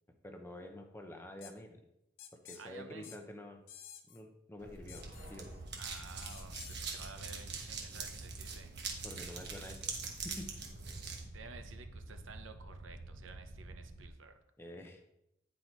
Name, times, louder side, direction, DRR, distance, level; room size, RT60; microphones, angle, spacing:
voice 1, 0.2-1.8 2.4-3.6 4.1-5.0 5.3-5.6 9.0-9.9 10.2-10.5 14.6-15.1, left 1 dB, 10° left, 4 dB, 0.7 m, -48 dB
sound 1, 1.4-1.5 2.2-2.6 3.0-3.2 3.7-4.2 4.9-5.3 6.2-6.9, left 10 dB, 85° left, 0.7 m, -52 dB
voice 2, 2.5-3.2 5.8-8.7 11.2-14.4, right 4 dB, 75° right, 7 dB, 0.8 m, -53 dB
sound 2, 4.6-11.2, right 5 dB, 55° right, 1.2 m, -44 dB
sound 3, 4.8-14.1, right 2 dB, 40° right, 0.8 m, -49 dB
9.5 x 4.2 x 4.4 m, 0.84 s
head